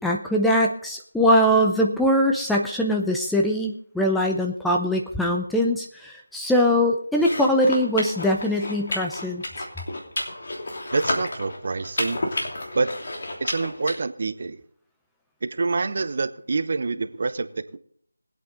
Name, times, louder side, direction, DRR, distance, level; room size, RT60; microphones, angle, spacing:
voice 1, 0.0-9.7, equal, ahead, 0 dB, 0.6 m, -22 dB
sound 1, 7.1-14.0, left 2 dB, 50° left, 2.9 m, -31 dB
voice 2, 10.9-12.2 12.7-12.9 13.4-14.6 15.4-17.8, right 3 dB, 45° right, 12 dB, 0.8 m, -26 dB
21.5 x 8.5 x 3.9 m, 0.63 s
figure-of-eight pair, 165°, 0 cm